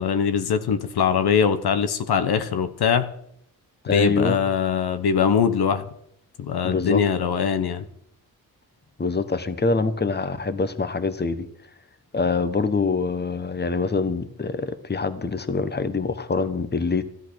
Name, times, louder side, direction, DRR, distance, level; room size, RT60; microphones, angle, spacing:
voice 1, 0.0-3.1 3.9-5.8 6.4-7.8, left 7 dB, 75° left, 10 dB, 1.2 m, -22 dB
voice 2, 3.8-4.4 6.6-7.0 9.0-11.5 12.1-17.0, left 4 dB, 25° left, 12 dB, 1.3 m, -25 dB
13.5 x 11.0 x 6.4 m, 0.72 s
cardioid pair, 70°, 38 cm